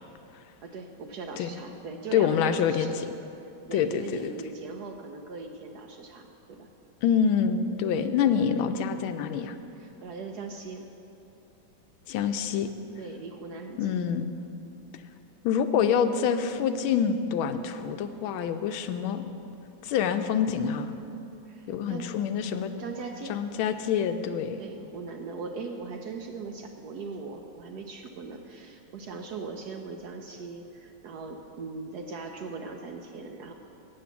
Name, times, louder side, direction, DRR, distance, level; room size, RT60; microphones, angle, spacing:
voice 1, 0.6-3.0 3.7-6.7 8.1-8.3 9.7-10.9 13.0-14.0 21.5-22.1 22.7-23.4 24.6-33.5, right 4 dB, 70° right, 4 dB, 1.0 m, -40 dB
voice 2, 2.1-3.1 3.7-4.3 7.0-9.6 12.1-12.7 13.8-14.4 15.4-19.3 19.8-20.9 21.7-22.7 23.3-24.6, left 7 dB, 90° left, 9 dB, 1.4 m, -26 dB
9.1 x 7.7 x 7.0 m, 2.8 s
omnidirectional pair, 2.2 m